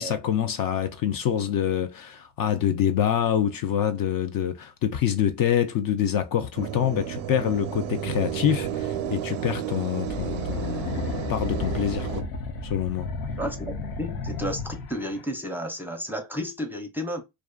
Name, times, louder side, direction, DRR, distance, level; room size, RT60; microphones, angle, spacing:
voice 1, 0.0-12.2 12.6-13.1, left 9 dB, 50° left, 0.5 m, -26 dB
sound 1, 6.6-12.2, right 9 dB, 85° right, 0.5 m, -32 dB
sound 2, 10.0-15.2, left 3 dB, 80° left, 0.7 m, -33 dB
voice 2, 13.4-17.2, equal, 5° right, 0.5 m, -32 dB
2.4 x 2.3 x 2.2 m
supercardioid pair, 80°, 46 cm